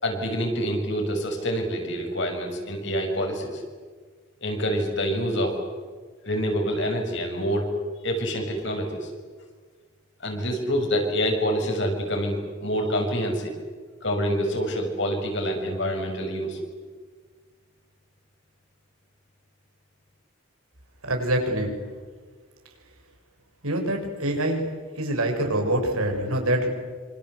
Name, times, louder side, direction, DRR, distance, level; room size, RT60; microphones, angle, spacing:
voice 1, 0.0-3.6 4.4-5.6 6.2-7.8 8.0-9.1 10.2-13.5 14.0-16.6, equal, 55° left, 3 dB, 6.7 m, -26 dB
voice 2, 21.0-21.7 23.6-24.6 24.9-26.7, right 1 dB, 85° right, 3 dB, 6.9 m, -25 dB
27.5 x 26.5 x 8.3 m, 1.5 s
head